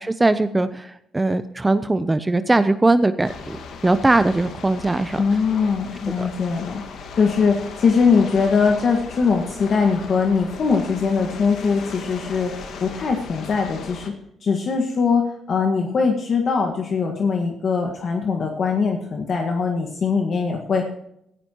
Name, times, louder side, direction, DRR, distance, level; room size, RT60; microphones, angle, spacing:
voice 1, 0.0-3.6 3.8-5.2 6.2-6.3, right 2 dB, 15° right, 12 dB, 0.5 m, -20 dB
sound 1, 3.2-14.1, left 5 dB, 70° left, 1.8 m, -37 dB
voice 2, 5.2-6.8 7.2-12.5 12.8-14.1 14.4-20.9, left 5 dB, 55° left, 2 dB, 1.6 m, -21 dB
15.5 x 14.5 x 3.0 m, 0.77 s
cardioid pair, 90°, 0 cm